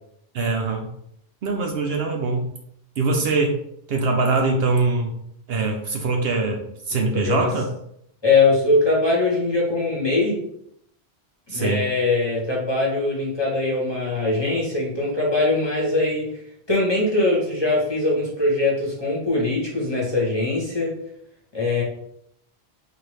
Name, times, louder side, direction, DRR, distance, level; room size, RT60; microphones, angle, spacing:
voice 1, 0.3-0.9 1.4-2.4 3.0-3.6 3.9-5.1 5.5-7.7 11.5-11.9, right 3 dB, 65° right, 2 dB, 0.7 m, -23 dB
voice 2, 6.9-7.5 8.2-10.4 11.5-16.3 16.7-21.0 21.5-21.8, left 2 dB, 25° left, -4 dB, 1.0 m, -22 dB
4.0 x 2.6 x 3.2 m, 0.73 s
omnidirectional pair, 1.2 m